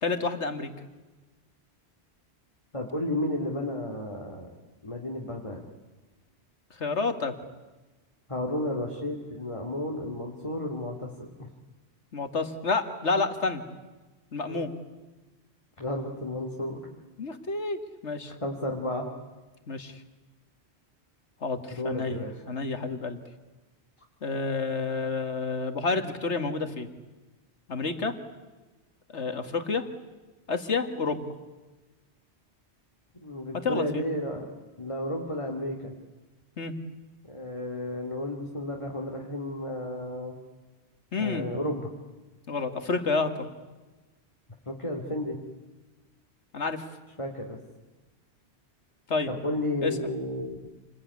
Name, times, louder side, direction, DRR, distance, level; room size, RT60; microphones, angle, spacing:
voice 1, 0.0-0.7 6.8-7.3 12.1-13.6 14.3-14.7 17.2-18.3 19.7-20.0 21.4-23.2 24.2-26.9 27.7-28.1 29.1-29.8 30.5-31.3 33.6-34.0 36.6-36.7 41.1-41.5 42.5-43.4 46.5-46.8 49.1-49.3 49.8-49.9, left 4 dB, 90° left, 8 dB, 2.2 m, -29 dB
voice 2, 2.7-4.5 4.8-5.6 8.3-11.5 14.5-14.7 15.8-16.8 18.4-19.1 21.7-22.3 33.1-34.5 34.8-35.9 37.2-40.4 41.2-41.9 44.7-45.4 47.2-47.6 49.3-50.6, left 1 dB, 25° left, 0 dB, 2.5 m, -32 dB
28.0 x 21.5 x 9.6 m, 1.2 s
omnidirectional pair, 1.1 m